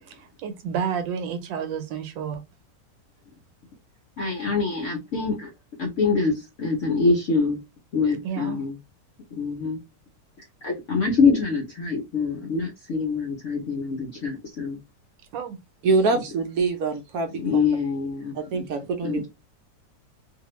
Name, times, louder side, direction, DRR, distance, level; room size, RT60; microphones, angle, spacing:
voice 1, 0.0-2.4 8.2-8.6 15.3-15.6, right 7 dB, 90° right, 1.4 m, -30 dB
voice 2, 4.2-5.5 5.8-7.6 7.9-8.8 9.4-9.8 10.6-14.8 17.3-18.7 19.0-19.3, left 4 dB, 70° left, 0.7 m, -25 dB
voice 3, 15.8-17.7 18.3-19.3, right 3 dB, 70° right, 0.9 m, -25 dB
2.7 x 2.5 x 2.9 m
omnidirectional pair, 2.0 m